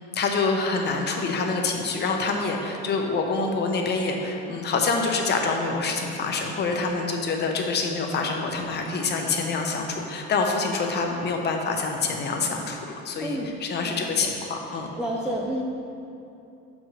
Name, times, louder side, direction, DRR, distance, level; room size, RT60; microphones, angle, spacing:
voice 1, 0.1-12.8 13.0-14.9, left 4 dB, 35° left, 2 dB, 0.7 m, -26 dB
voice 2, 13.8-14.3 15.0-15.6, right 1 dB, 5° right, -3 dB, 0.3 m, -30 dB
5.3 x 4.8 x 6.3 m, 2.8 s
cardioid pair, 160°, 30 cm